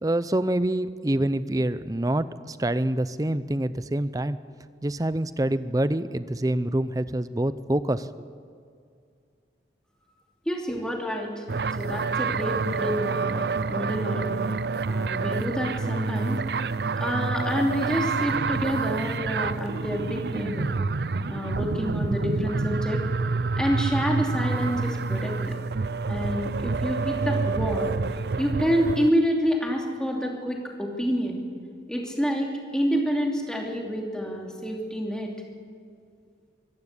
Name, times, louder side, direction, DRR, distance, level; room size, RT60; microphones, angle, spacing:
voice 1, 0.0-4.4 4.8-8.1, right 1 dB, 20° right, 14 dB, 0.6 m, -26 dB
voice 2, 10.5-11.4 11.7-14.4 14.9-20.7 21.3-23.0 23.6-25.6 26.1-27.9 28.4-31.4 31.9-35.3, equal, 5° left, -1 dB, 2.8 m, -28 dB
sound 1, 11.5-29.1, right 4 dB, 65° right, 0.5 m, -28 dB
sound 2, 18.3-24.5, right 2 dB, 45° right, 4.3 m, -47 dB
24.5 x 14.0 x 8.3 m, 2.3 s
head